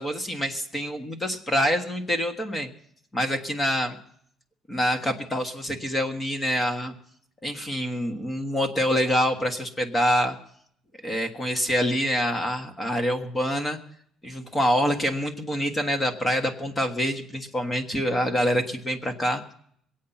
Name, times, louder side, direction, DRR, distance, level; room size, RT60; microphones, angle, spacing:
voice 1, 0.0-2.7 3.1-4.0 4.7-6.9 7.4-10.3 11.0-13.8 14.2-19.4, equal, 15° left, 5 dB, 1.5 m, -26 dB
22.5 x 8.5 x 5.7 m, 0.65 s
cardioid pair, 140°, 0 cm